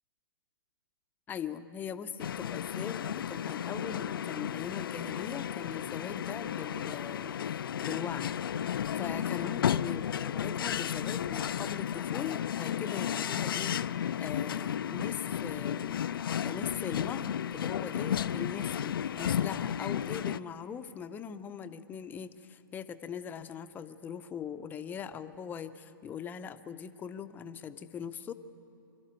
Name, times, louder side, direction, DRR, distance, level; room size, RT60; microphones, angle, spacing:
voice 1, 1.3-8.3 8.9-13.8 14.2-16.0 16.4-28.3, left 8 dB, 15° left, 10 dB, 0.6 m, -41 dB
sound 1, 2.2-20.4, left 9 dB, 75° left, 0.4 m, -33 dB
25.0 x 12.5 x 8.9 m, 2.7 s
hypercardioid pair, 135°, 12 cm